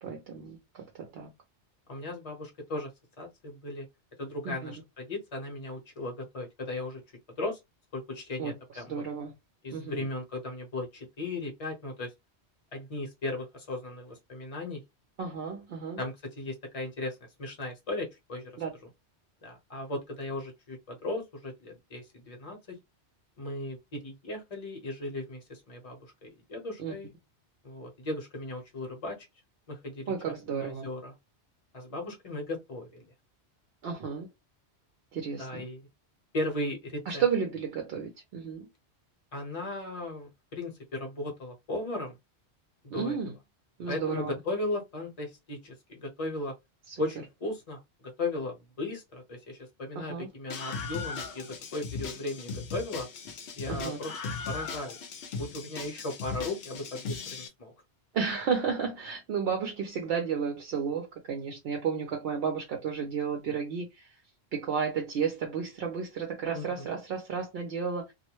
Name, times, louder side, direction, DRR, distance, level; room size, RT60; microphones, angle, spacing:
voice 1, 0.0-1.3 4.4-4.7 8.4-9.3 9.7-10.1 15.2-16.0 18.6-18.7 26.8-26.9 30.1-30.9 33.8-34.3 35.1-35.6 37.1-38.7 42.9-43.4 43.8-44.3 46.9-47.0 50.0-50.3 53.7-54.0 58.1-64.1 64.5-68.1, right 6 dB, 65° right, 0.8 m, -32 dB
voice 2, 1.9-2.9 3.2-3.9 4.2-7.0 7.4-7.6 7.9-8.9 9.6-12.1 12.7-14.8 16.0-18.5 19.4-22.6 23.4-27.1 27.6-29.2 29.7-30.1 30.5-31.1 31.7-33.0 35.4-35.8 36.3-37.2 39.3-42.2 42.8-43.2 43.9-46.5 47.0-53.1 53.5-54.1 54.5-55.0 55.3-57.7 66.5-66.9, left 2 dB, 35° left, 1.0 m, -36 dB
Screaming, 50.5-57.5, left 5 dB, 75° left, 0.8 m, -38 dB
2.4 x 2.1 x 2.9 m
omnidirectional pair, 1.1 m